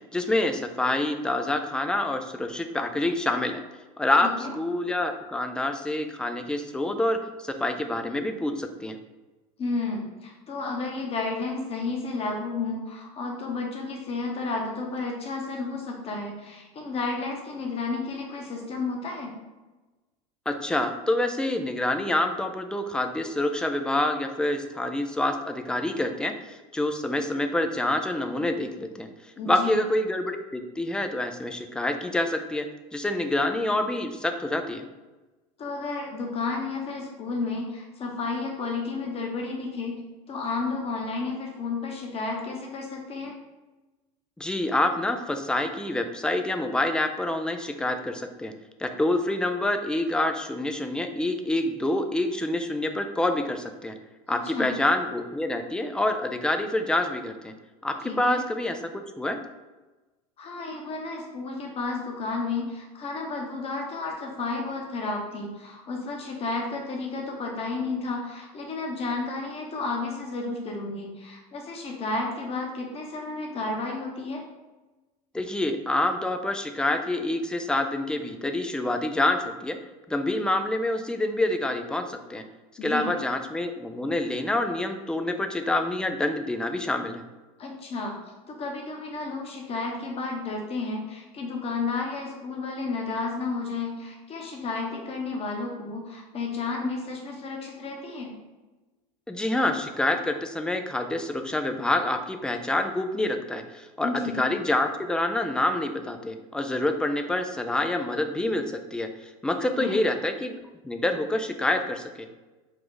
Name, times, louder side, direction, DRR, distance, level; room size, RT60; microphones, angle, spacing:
voice 1, 0.1-3.6 4.0-4.3 4.5-9.0 20.5-29.1 29.5-32.7 32.9-34.8 44.4-48.5 48.8-53.9 54.3-57.5 57.8-59.4 75.3-79.8 80.1-82.4 82.8-87.2 99.3-108.7 108.9-109.1 109.4-110.6 110.8-112.3, left 1 dB, 5° left, 7 dB, 0.3 m, -27 dB
voice 2, 4.2-4.5 9.6-19.3 29.4-29.7 35.6-39.9 40.3-43.4 54.3-54.8 58.0-58.4 60.4-74.4 82.8-83.1 87.6-88.1 88.5-98.3 104.0-104.3 109.8-110.0, left 3 dB, 30° left, 1 dB, 1.0 m, -32 dB
4.9 x 2.4 x 3.9 m, 1.2 s
supercardioid pair, 115°, 19 cm